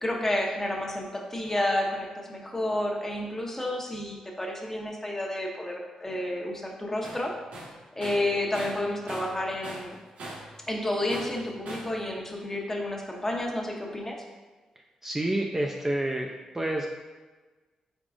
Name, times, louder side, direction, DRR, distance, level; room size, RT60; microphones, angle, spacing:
voice 1, 0.0-7.3 8.0-10.0 10.7-14.2, left 1 dB, 20° left, 0 dB, 0.7 m, -30 dB
Tools, 7.0-7.2 7.5-9.4 9.6-10.5 11.1-12.0, right 1 dB, 75° right, 0.9 m, -40 dB
voice 2, 15.0-16.3 16.5-16.9, right 1 dB, 15° right, 0 dB, 0.4 m, -28 dB
4.0 x 3.6 x 2.5 m, 1.3 s
cardioid pair, 60°, 2 cm